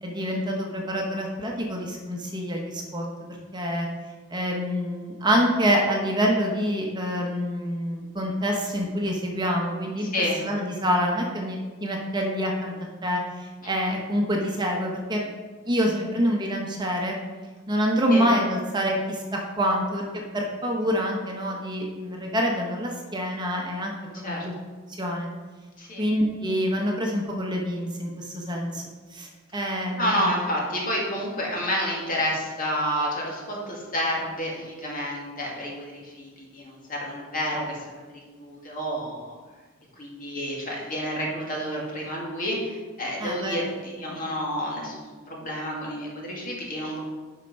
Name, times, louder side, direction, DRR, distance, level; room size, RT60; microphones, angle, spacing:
voice 1, 0.0-3.1 3.5-3.9 4.3-10.1 10.4-12.7 13.0-15.3 15.7-17.2 17.7-20.0 20.3-24.5 25.0-25.3 26.0-28.8 29.1-30.3 43.2-43.6, equal, 20° right, 0 dB, 1.1 m, -26 dB
voice 2, 13.6-13.9 18.1-18.2 24.2-24.4 25.8-26.0 30.0-39.4 40.0-47.0, equal, 45° left, -3 dB, 2.2 m, -30 dB
8.2 x 5.8 x 5.4 m, 1.4 s
head